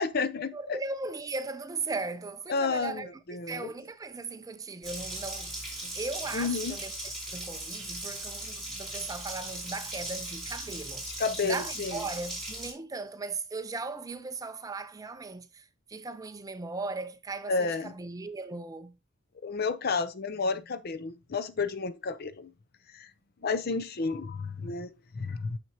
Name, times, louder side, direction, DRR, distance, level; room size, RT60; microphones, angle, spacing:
voice 1, 0.0-0.8 2.5-3.7 6.3-6.7 11.2-12.0 17.5-17.9 19.4-22.5 22.9-23.1 23.4-25.6, left 4 dB, 45° left, 0.5 m, -31 dB
voice 2, 0.5-6.9 7.2-11.1 11.4-19.0, right 3 dB, 15° right, 0.4 m, -38 dB
Water tap faucet, 4.8-12.7, right 1 dB, ahead, 2.7 m, -38 dB
6.2 x 5.9 x 2.8 m
head